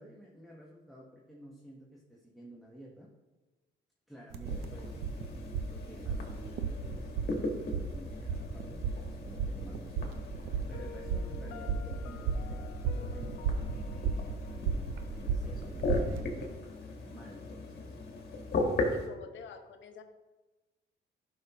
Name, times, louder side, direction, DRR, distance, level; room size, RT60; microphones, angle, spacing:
voice 1, 0.0-3.1 4.1-5.3 5.6-16.6 17.0-18.0, equal, ahead, -3 dB, 1.3 m, -52 dB
sound 1, 4.3-16.2, right 5 dB, 90° right, 0.6 m, -35 dB
sound 2, 4.4-19.1, left 2 dB, 55° left, 1.7 m, -38 dB
Piano, 10.7-15.7, left 12 dB, 85° left, 0.5 m, -51 dB
voice 2, 18.9-20.0, left 6 dB, 70° left, 7 dB, 0.9 m, -48 dB
12.0 x 5.7 x 3.0 m, 1.2 s
cardioid pair, 90°, 20 cm